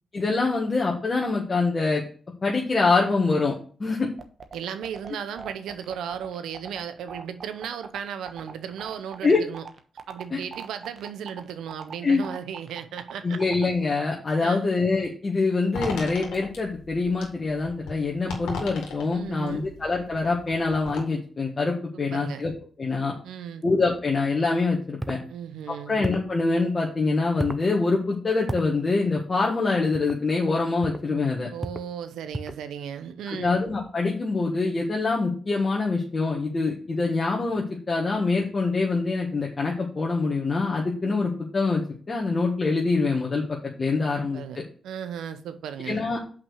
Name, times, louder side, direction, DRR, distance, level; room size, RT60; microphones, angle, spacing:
voice 1, 0.1-2.0 2.4-4.1 9.2-9.4 10.3-10.4 12.0-12.2 13.2-22.5 22.8-23.1 23.6-25.2 25.9-31.5 33.3-41.8 42.1-44.4 45.8-46.2, left 3 dB, 40° left, 1.7 m, -25 dB
sound 1, 4.2-13.7, right 5 dB, 60° right, 1.1 m, -41 dB
voice 2, 4.5-9.6 10.1-13.4 14.4-14.7 19.1-19.7 21.9-22.4 23.2-23.6 25.3-26.0 31.5-33.6 44.0-46.0, right 8 dB, 85° right, 0.8 m, -36 dB
sound 2, 15.7-21.0, left 3 dB, 90° left, 1.9 m, -38 dB
sound 3, 25.0-25.2 26.0-26.3 27.4-27.7 28.5-28.7 29.9-30.2 30.8-31.1 31.6-31.9 32.3-32.7, right 1 dB, 10° right, 0.7 m, -33 dB
5.9 x 5.2 x 6.4 m
supercardioid pair, 50°, 0 cm